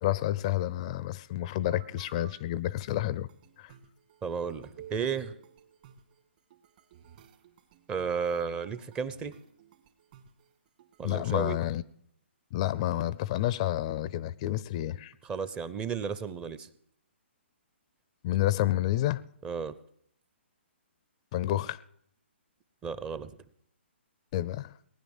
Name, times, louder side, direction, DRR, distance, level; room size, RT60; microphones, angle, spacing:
voice 1, 0.0-3.3 3.6-3.7 11.0-11.8 12.5-15.1 18.2-19.2 21.3-21.8 24.3-24.7, left 14 dB, 30° left, 0.5 m, -29 dB
sound 1, 1.6-2.4 2.9-11.4, right 9 dB, 40° right, 2.0 m, -54 dB
voice 2, 4.2-5.3 7.9-9.3 11.0-11.6 15.2-16.7 19.4-19.7 22.8-23.3, right 6 dB, 15° right, 0.7 m, -33 dB
19.5 x 10.0 x 7.2 m
hypercardioid pair, 155°, 7 cm